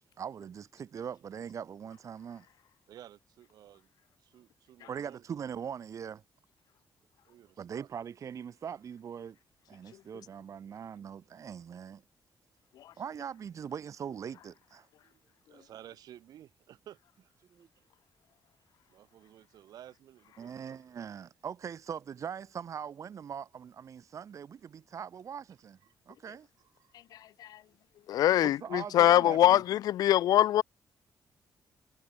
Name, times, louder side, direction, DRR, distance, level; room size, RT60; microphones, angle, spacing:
voice 1, 0.2-2.5 4.9-6.2 7.6-9.4 9.7-12.0 13.0-14.9 17.5-17.7 20.4-25.8 26.1-26.5 28.4-29.6, right 7 dB, 55° right, 1.7 m, -41 dB
voice 2, 2.9-3.9 4.2-5.2 7.2-7.9 15.0-17.3 18.9-20.8 26.8-26.9, right 11 dB, 85° right, 5.8 m, -54 dB
voice 3, 28.1-30.6, left 12 dB, 85° left, 0.5 m, -23 dB
cardioid pair, 105°, 6 cm